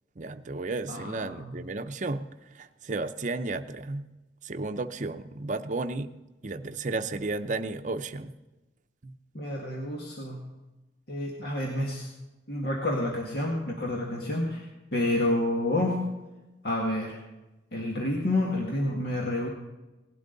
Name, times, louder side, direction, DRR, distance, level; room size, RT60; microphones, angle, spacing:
voice 1, 0.2-2.3 2.5-4.0 4.4-6.1 6.4-8.3 9.0-9.1, right 3 dB, 45° right, 10 dB, 0.7 m, -33 dB
voice 2, 0.9-1.6 9.3-10.4 11.1-12.1 12.5-14.7 14.9-16.0 16.6-17.2 17.7-19.5, left 1 dB, 60° left, -1 dB, 1.9 m, -29 dB
18.0 x 12.0 x 4.0 m, 1.1 s
head